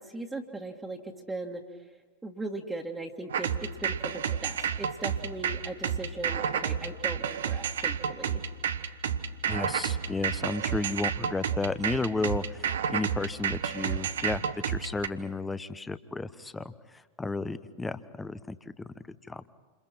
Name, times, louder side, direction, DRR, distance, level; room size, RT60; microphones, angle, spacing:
voice 1, 0.0-1.6 2.2-8.4, right 2 dB, 10° right, -1 dB, 2.0 m, -38 dB
sound 1, 3.3-15.1, right 8 dB, 65° right, 1.1 m, -30 dB
voice 2, 9.5-16.7 17.2-18.6 19.1-19.4, left 3 dB, 10° left, 14 dB, 1.1 m, -33 dB
29.0 x 28.5 x 4.5 m, 1.4 s
figure-of-eight pair, 90°, 0 cm